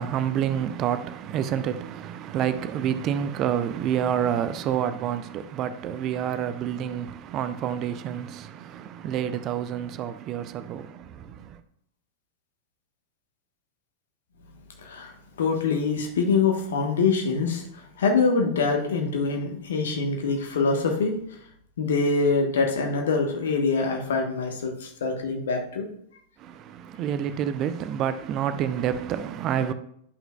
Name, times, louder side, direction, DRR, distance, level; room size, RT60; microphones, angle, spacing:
voice 1, 0.0-11.6 26.4-29.7, right 9 dB, 35° right, 0.5 m, -28 dB
voice 2, 14.8-15.1 15.4-21.1 21.8-25.9, left 4 dB, 60° left, 1.2 m, -24 dB
9.9 x 5.6 x 2.3 m
figure-of-eight pair, 90°, 0 cm